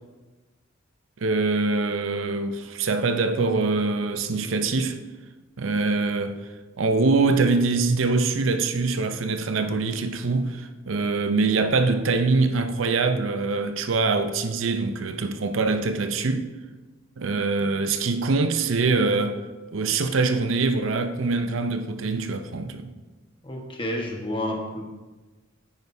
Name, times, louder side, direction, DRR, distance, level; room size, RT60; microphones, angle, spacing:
voice 1, 1.2-5.0 5.6-6.4 6.8-16.5 17.2-19.4 19.7-22.9, right 3 dB, 75° right, 0.6 m, -24 dB
voice 2, 23.4-24.9, left 1 dB, 25° left, 1.3 m, -30 dB
9.9 x 9.3 x 2.7 m
head